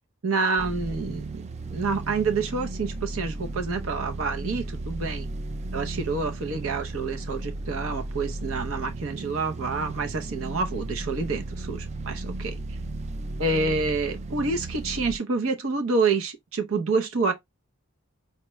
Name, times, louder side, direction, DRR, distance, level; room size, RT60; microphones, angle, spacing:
voice 1, 0.2-1.3 1.7-5.3 5.7-12.6 13.4-17.3, right 4 dB, 70° right, 0.7 m, -28 dB
sound 1, 0.6-15.2, right 2 dB, 30° right, 0.3 m, -35 dB
4.3 x 2.2 x 2.9 m
head